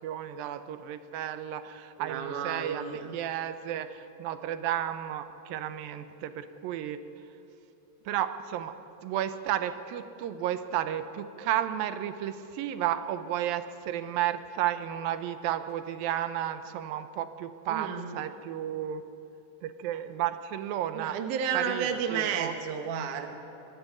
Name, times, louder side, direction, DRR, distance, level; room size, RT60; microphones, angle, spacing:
voice 1, 0.0-7.0 8.1-8.8 9.0-19.0 19.6-21.2 21.5-22.5, right 11 dB, 85° right, 11 dB, 2.5 m, -33 dB
voice 2, 2.0-3.2 17.7-18.1 20.9-23.4, right 7 dB, 65° right, 6 dB, 2.5 m, -32 dB
24.0 x 12.0 x 9.5 m, 3.0 s
omnidirectional pair, 4.2 m